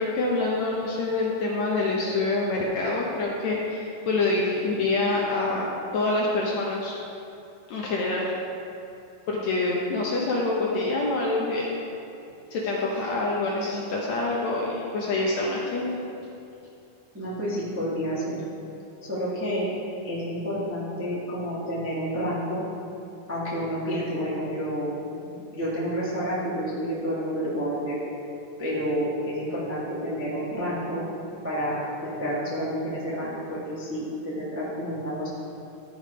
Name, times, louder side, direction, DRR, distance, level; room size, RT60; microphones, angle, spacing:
voice 1, 0.0-5.6 5.9-6.9 7.7-8.3 9.3-11.7 12.5-15.9, left 2 dB, 70° left, -4 dB, 1.9 m, -26 dB
voice 2, 17.1-18.4 19.1-19.7 20.0-22.6 23.3-24.9 25.2-28.0 28.6-31.0 31.4-31.8 32.0-35.3, equal, 10° right, -8 dB, 0.8 m, -29 dB
13.0 x 5.0 x 5.1 m, 2.7 s
omnidirectional pair, 4.0 m